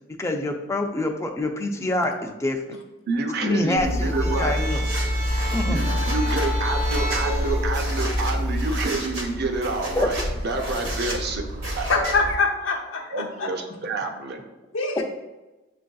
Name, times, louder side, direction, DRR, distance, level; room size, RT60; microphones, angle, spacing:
voice 1, 0.2-2.6 3.4-4.8 5.5-5.8 10.0-10.3 15.0-15.1, left 1 dB, 15° left, 3 dB, 0.3 m, -26 dB
voice 2, 3.1-4.6 5.7-11.4 11.8-11.9 13.1-14.4, right 3 dB, 55° right, 4 dB, 0.5 m, -28 dB
sound 1, 3.8-8.8, equal, 30° right, 0.8 m, -25 dB
sound 2, 3.8-12.4, right 1 dB, 85° right, 1.1 m, -32 dB
voice 3, 11.6-13.5 14.7-15.0, left 3 dB, 80° left, 1 dB, 0.7 m, -24 dB
7.1 x 2.5 x 2.3 m, 1.1 s
head